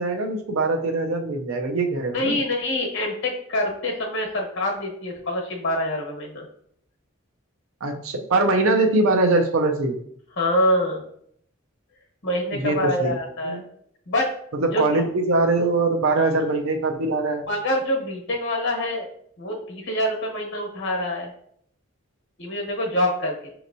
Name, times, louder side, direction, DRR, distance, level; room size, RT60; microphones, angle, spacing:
voice 1, 0.0-2.4 7.8-10.0 12.5-13.2 13.4-13.6 14.5-17.5, right 2 dB, 75° right, 4 dB, 0.6 m, -22 dB
voice 2, 2.1-6.5 10.4-11.0 12.2-13.6 14.1-14.3 14.6-15.0 17.5-19.1 19.4-21.3 22.4-23.5, left 1 dB, 60° left, 0 dB, 1.0 m, -25 dB
5.2 x 2.9 x 2.6 m, 0.66 s
head